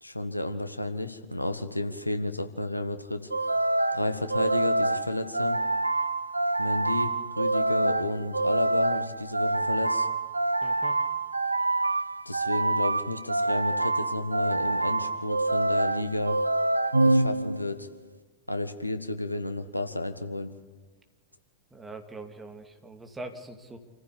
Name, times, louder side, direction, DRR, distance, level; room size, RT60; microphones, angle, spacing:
voice 1, 0.0-3.3 3.9-5.6 6.6-10.1 12.2-16.4 17.0-17.9 18.5-20.5, left 1 dB, 85° left, 9 dB, 1.4 m, -31 dB
sound 1, 3.3-17.8, right 2 dB, 85° right, 0.7 m, -26 dB
voice 2, 10.6-11.0 21.7-23.8, right 2 dB, 10° right, 4 dB, 2.4 m, -42 dB
27.5 x 15.0 x 8.4 m, 1.4 s
figure-of-eight pair, 90°, 0 cm